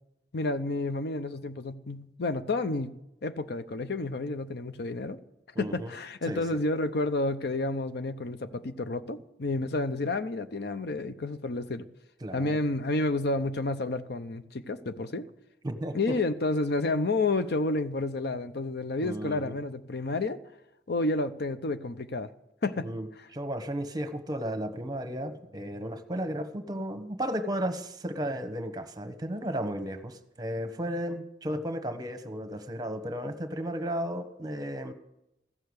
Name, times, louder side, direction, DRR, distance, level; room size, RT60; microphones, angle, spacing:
voice 1, 0.3-2.9 3.2-5.2 5.6-11.8 12.3-15.3 15.9-20.4 20.9-22.3 22.6-22.9, left 2 dB, 65° left, 0.7 m, -30 dB
voice 2, 5.5-5.9 6.3-6.6 12.2-12.6 15.6-16.2 19.0-19.5 22.8-34.9, equal, 25° right, 1.1 m, -34 dB
15.0 x 6.8 x 9.6 m
head